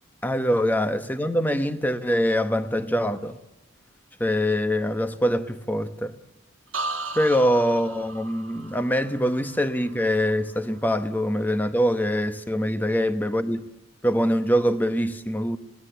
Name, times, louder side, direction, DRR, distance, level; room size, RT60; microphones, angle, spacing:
voice 1, 0.2-3.4 4.2-6.1 7.1-13.7 14.0-15.6, equal, 10° left, 1.0 m, -24 dB
sound 1, 6.7-10.5 10.9-11.4, right 2 dB, 75° right, 1.6 m, -36 dB
27.0 x 18.5 x 7.0 m
head